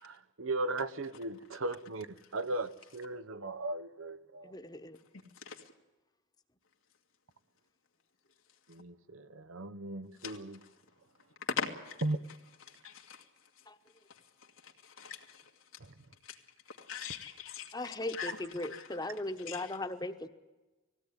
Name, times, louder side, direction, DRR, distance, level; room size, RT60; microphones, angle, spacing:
voice 1, 0.0-4.5 8.7-10.6 12.0-12.2 15.8-15.9, right 2 dB, 85° right, 0.9 m, -37 dB
voice 2, 4.4-5.0 13.7-13.8 17.7-20.3, left 2 dB, 20° left, 1.1 m, -38 dB
voice 3, 11.6-11.9 12.8-12.9 15.0-15.2 16.9-17.7 18.2-18.3 19.5-19.6, left 6 dB, 90° left, 2.2 m, -38 dB
19.5 x 16.5 x 9.8 m
head